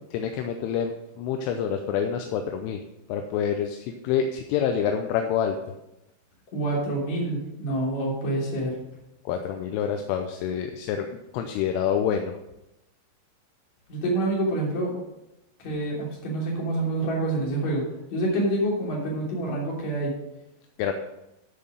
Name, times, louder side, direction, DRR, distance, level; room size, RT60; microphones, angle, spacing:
voice 1, 0.1-2.8 3.1-5.6 9.3-11.1 11.3-12.4 20.8-20.9, left 8 dB, 80° left, 5 dB, 3.0 m, -27 dB
voice 2, 6.5-8.8 13.9-14.9 15.6-17.9 18.1-20.1, right 2 dB, 40° left, -4 dB, 3.8 m, -27 dB
12.5 x 5.8 x 5.1 m, 0.92 s
omnidirectional pair, 6.0 m